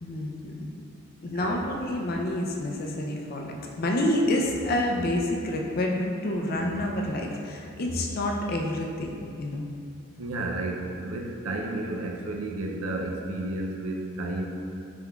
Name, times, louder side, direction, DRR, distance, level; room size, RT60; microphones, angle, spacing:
voice 1, 0.0-0.7 1.2-9.7, left 1 dB, 45° left, 0 dB, 0.4 m, -28 dB
voice 2, 1.3-1.7 10.2-14.4, right 2 dB, 85° right, 0 dB, 0.5 m, -32 dB
sound 1, 6.4-8.7, equal, 20° left, 1.0 m, -46 dB
5.4 x 3.4 x 2.3 m, 2.4 s
head